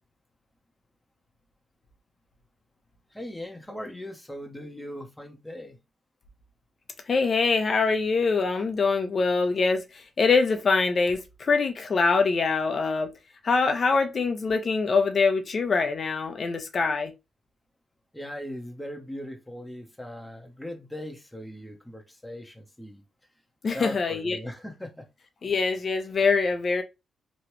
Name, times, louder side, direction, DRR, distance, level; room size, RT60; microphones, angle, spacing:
voice 1, 3.1-5.8 18.1-23.0 23.7-25.1, left 1 dB, 10° left, 0.9 m, -39 dB
voice 2, 7.1-13.1 13.4-17.1 23.6-24.4 25.4-26.8, left 4 dB, 50° left, 0.7 m, -24 dB
3.0 x 2.4 x 3.1 m
cardioid pair, 70°, 0 cm